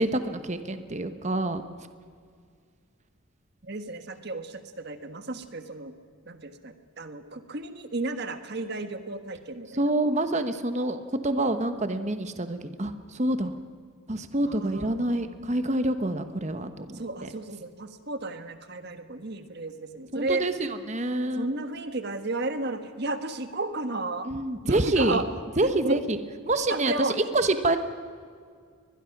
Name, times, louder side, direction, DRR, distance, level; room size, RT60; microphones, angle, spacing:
voice 1, 0.0-1.6 9.7-13.6 14.1-17.3 20.1-21.5 24.2-25.2 25.6-26.2 26.4-27.8, right 1 dB, 35° right, 9 dB, 1.1 m, -27 dB
voice 2, 3.6-5.9 6.3-9.8 14.4-15.5 16.9-20.5 21.4-24.3 24.6-25.3 25.6-26.0 26.7-27.1, right 2 dB, 50° right, 9 dB, 1.4 m, -33 dB
23.0 x 21.0 x 6.0 m, 2.1 s
head